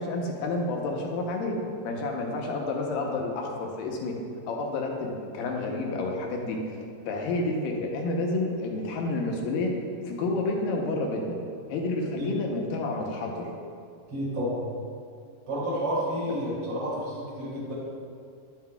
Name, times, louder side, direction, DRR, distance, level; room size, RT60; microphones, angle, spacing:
voice 1, 0.0-1.6 1.8-4.2 4.5-6.8 7.1-9.7 10.1-11.4 11.7-13.5 16.3-16.4, left 2 dB, 80° left, 1 dB, 2.5 m, -29 dB
voice 2, 14.1-14.6 15.5-17.7, equal, 40° right, -9 dB, 2.0 m, -30 dB
10.5 x 7.6 x 2.3 m, 2.3 s
omnidirectional pair, 4.0 m